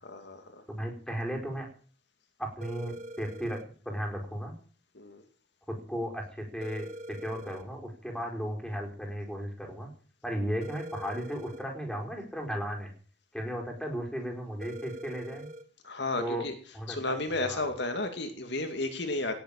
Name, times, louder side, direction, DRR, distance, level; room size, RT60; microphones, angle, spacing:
voice 1, 0.0-0.6 4.9-5.2 15.8-16.5 16.9-19.3, left 2 dB, 60° left, 6 dB, 2.2 m, -33 dB
voice 2, 0.7-1.7 2.4-4.5 5.7-9.9 10.2-12.9 13.3-15.5 16.2-16.5 16.7-17.2 17.4-17.7, equal, 5° left, 2 dB, 4.6 m, -35 dB
sound 1, 2.6-3.6 6.6-7.6 10.6-11.6 14.6-15.6, right 1 dB, 40° right, 1.2 m, -43 dB
17.5 x 7.7 x 8.8 m, 0.42 s
head